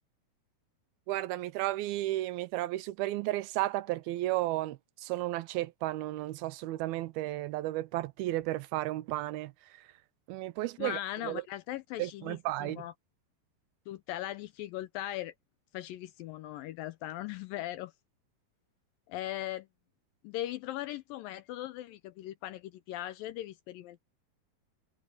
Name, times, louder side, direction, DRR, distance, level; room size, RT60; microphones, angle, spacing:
voice 1, 1.1-9.9 10.3-11.4 12.0-12.8, right 16 dB, 80° right, 2.5 m, -33 dB
voice 2, 10.8-12.9 13.9-15.3 15.7-17.9 19.1-19.7 20.2-24.0, left 14 dB, 80° left, 2.1 m, -39 dB
omnidirectional pair, 4.5 m